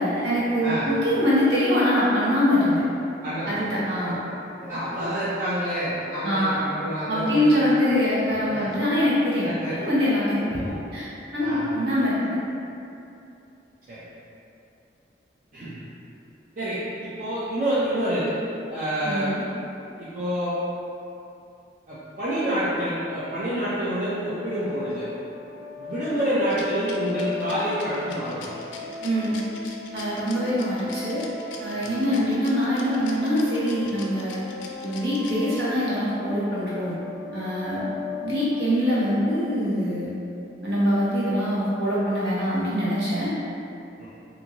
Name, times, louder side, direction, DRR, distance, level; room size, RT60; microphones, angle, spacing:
voice 1, 0.0-2.8 3.4-4.2 5.0-5.1 6.2-6.6 7.1-9.5 9.7-11.0 11.3-12.4 19.0-19.4 29.0-29.4 29.9-31.2 31.6-34.4 34.8-37.0 37.3-37.9 38.2-40.1 40.6-43.3, equal, 65° right, -9 dB, 0.9 m, -24 dB
voice 2, 3.2-3.6 4.1-4.2 4.6-7.7 8.5-8.7 9.4-9.8 10.5-10.7 11.4-11.7 13.9-14.0 15.5-15.8 16.6-18.3 18.7-19.3 20.0-20.5 21.9-25.1 25.8-28.5 31.8-31.9 44.0-44.1, right 1 dB, 45° right, -12 dB, 0.5 m, -28 dB
sound 1, 24.0-39.5, left 4 dB, 15° right, 1.2 m, -37 dB
Rattle, 26.5-36.0, left 6 dB, 85° left, 0.3 m, -43 dB
2.6 x 2.4 x 2.9 m, 2.7 s
head